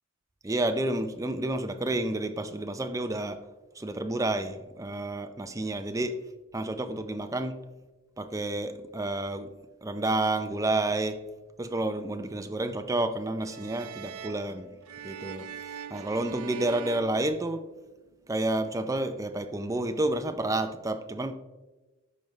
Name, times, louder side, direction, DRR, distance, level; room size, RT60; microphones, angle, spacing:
voice 1, 0.4-3.4 3.8-6.2 6.5-7.6 8.2-9.5 9.8-11.2 11.6-14.7 15.0-15.5 15.9-17.6 18.3-21.3, right 2 dB, 15° right, 8 dB, 0.5 m, -30 dB
sound 1, 13.4-18.0, right 8 dB, 80° right, 0.5 m, -42 dB
13.5 x 5.3 x 3.2 m, 1.2 s
head